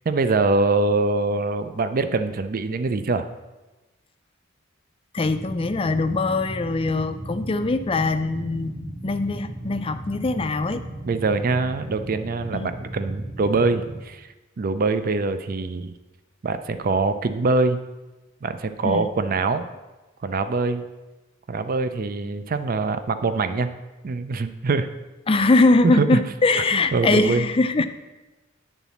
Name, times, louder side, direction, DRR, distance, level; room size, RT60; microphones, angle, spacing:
voice 1, 0.1-3.3 11.1-14.3 14.6-15.9 16.4-17.8 18.4-19.6 20.2-20.8 21.5-23.7 24.0-24.9 25.8-26.2 26.7-27.5, right 3 dB, 45° right, 10 dB, 0.4 m, -23 dB
voice 2, 5.1-10.8 12.5-12.7 18.8-19.1 25.3-27.9, left 3 dB, 25° left, 9 dB, 0.4 m, -22 dB
sound 1, 5.2-14.0, right 1 dB, 15° right, 0.7 m, -36 dB
9.2 x 4.0 x 7.0 m, 1.1 s
head